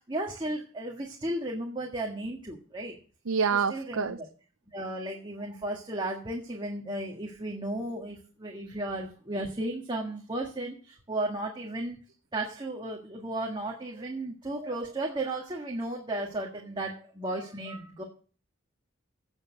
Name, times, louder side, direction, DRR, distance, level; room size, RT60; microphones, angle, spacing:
voice 1, 0.1-2.9 3.7-4.3 4.7-12.0 12.3-18.0, right 1 dB, 25° right, 1.7 m, -34 dB
voice 2, 3.3-4.2, right 6 dB, 85° right, 0.6 m, -27 dB
17.0 x 6.5 x 6.4 m
head